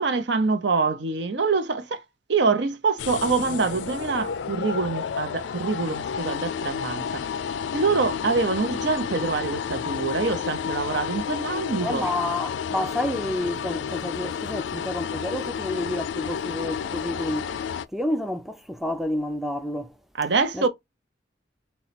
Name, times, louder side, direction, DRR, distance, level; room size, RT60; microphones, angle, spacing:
voice 1, 0.0-2.0 2.3-7.3 7.7-12.1 20.1-20.7, right 4 dB, 75° right, 0.7 m, -25 dB
sound 1, 3.0-17.9, left 7 dB, 85° left, 0.3 m, -31 dB
voice 2, 11.8-17.6 17.9-19.9 20.5-20.7, left 1 dB, ahead, 0.3 m, -29 dB
4.1 x 2.3 x 4.0 m
head